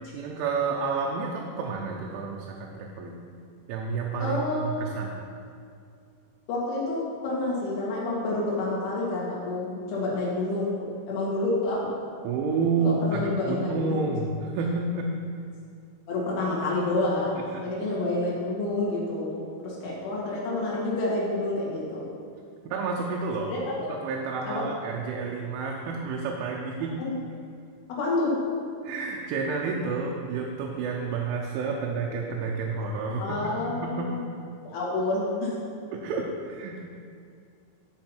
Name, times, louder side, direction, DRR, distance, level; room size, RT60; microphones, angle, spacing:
voice 1, 0.1-3.2 3.7-5.1 12.2-15.1 17.4-17.6 22.7-23.5 23.9-27.0 28.8-34.1 35.9-36.8, right 4 dB, 85° right, -1 dB, 3.2 m, -30 dB
voice 2, 4.2-4.9 6.5-11.9 12.8-14.0 16.1-22.1 23.5-23.9 24.5-24.6 27.0-27.1 27.9-28.4 33.2-34.2 34.6-35.5, left 2 dB, 75° left, -6 dB, 4.4 m, -29 dB
13.0 x 5.6 x 4.5 m, 2.4 s
omnidirectional pair, 5.5 m